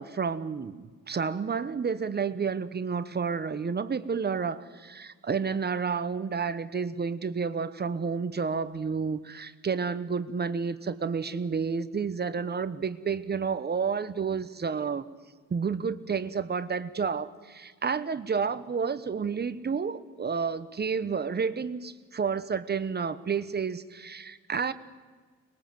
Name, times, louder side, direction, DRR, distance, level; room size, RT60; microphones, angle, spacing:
voice 1, 0.0-15.0 15.5-24.7, right 5 dB, 35° right, 13 dB, 1.1 m, -30 dB
24.5 x 21.0 x 7.8 m, 1.5 s
cardioid pair, 90°, 30 cm